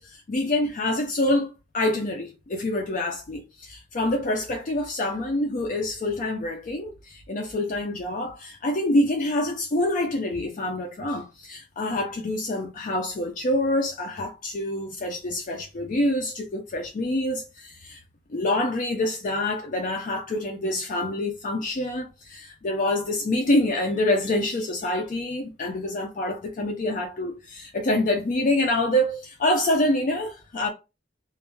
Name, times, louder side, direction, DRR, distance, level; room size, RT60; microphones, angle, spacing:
voice 1, 0.0-18.0 18.3-30.7, left 1 dB, 45° left, 0.4 m, -26 dB
2.3 x 2.1 x 3.0 m
head